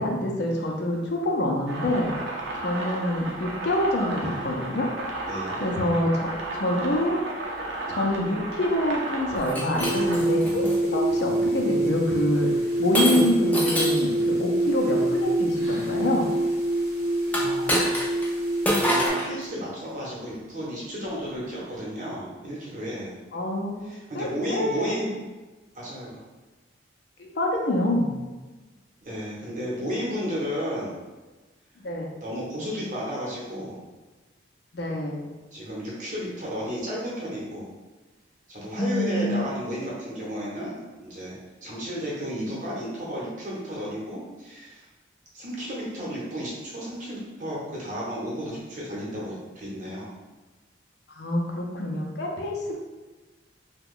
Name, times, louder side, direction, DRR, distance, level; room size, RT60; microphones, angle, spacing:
voice 1, 0.0-2.1 2.6-4.9 5.6-7.2 7.9-12.5 12.8-16.3 23.3-25.0 27.2-28.1 31.8-32.1 34.7-35.2 38.8-39.5 51.1-52.8, left 1 dB, 60° left, 0 dB, 0.5 m, -26 dB
sound 1, 1.7-10.2, right 2 dB, 70° right, 0.6 m, -33 dB
voice 2, 5.3-5.6 17.3-18.0 18.7-23.1 23.8-25.1 25.7-26.2 29.0-31.0 32.2-33.8 35.5-37.7 38.5-44.8 45.3-50.1, equal, 40° right, -5 dB, 0.9 m, -33 dB
Shatter, 9.4-10.8 11.4-11.8 12.9-14.1 17.3-18.3 18.6-19.3, equal, 10° left, 0.4 m, -26 dB
sound 2, 9.8-19.1, right 1 dB, 15° right, 0.8 m, -25 dB
2.9 x 2.2 x 3.7 m, 1.2 s
head